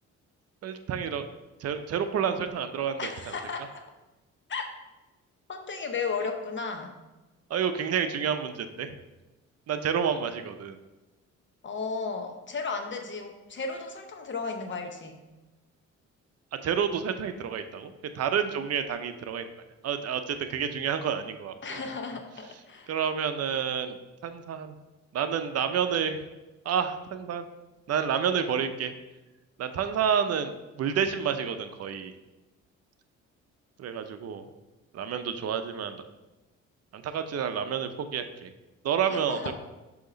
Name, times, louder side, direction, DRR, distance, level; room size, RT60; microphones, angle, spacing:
voice 1, 0.6-1.3 1.6-3.1 7.5-9.0 9.7-10.8 16.6-19.5 19.8-21.8 22.9-24.0 24.2-24.7 25.1-26.2 26.6-27.5 27.9-28.9 29.6-32.1 33.8-34.5 34.9-36.0 36.9-38.5 38.8-39.5, right 7 dB, 55° right, 9 dB, 0.6 m, -29 dB
voice 2, 3.0-3.8 4.5-4.6 5.5-6.9 11.6-15.2 21.6-22.9 39.1-39.5, left 4 dB, 40° left, 5 dB, 0.7 m, -34 dB
6.4 x 2.9 x 5.1 m, 1.1 s
cardioid pair, 90°, 30 cm